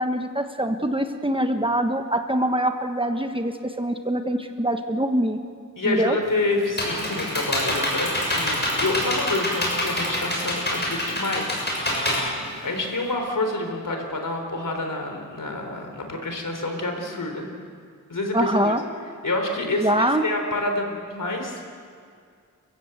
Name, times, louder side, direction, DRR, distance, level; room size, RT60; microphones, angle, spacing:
voice 1, 0.0-5.4 5.8-6.2 18.3-18.8 19.8-20.2, right 1 dB, 15° right, 6 dB, 1.3 m, -24 dB
voice 2, 5.8-11.7 12.6-17.5 18.1-18.7 19.2-21.7, left 2 dB, 70° left, 3 dB, 4.1 m, -28 dB
Computer keyboard, 6.2-13.1, left 1 dB, 30° left, 6.8 m, -26 dB
29.5 x 15.5 x 8.0 m, 2.2 s
wide cardioid pair, 85°, 33 cm